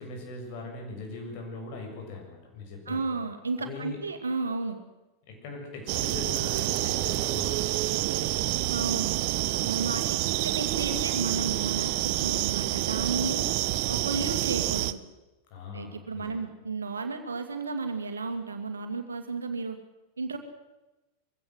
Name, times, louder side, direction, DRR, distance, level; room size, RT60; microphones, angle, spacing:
voice 1, 0.0-3.0 3.6-4.0 5.3-8.4 9.7-9.8 14.2-14.3 15.5-16.4, left 3 dB, 45° left, 1 dB, 7.4 m, -41 dB
voice 2, 2.9-4.8 8.7-9.2 9.6-13.5 13.9-15.0 15.7-19.8 20.2-20.4, right 4 dB, 75° right, 6 dB, 2.4 m, -33 dB
sound 1, 5.9-14.9, right 16 dB, 45° right, 0.8 m, -28 dB
22.5 x 16.5 x 7.9 m, 1.0 s
figure-of-eight pair, 90°, 0 cm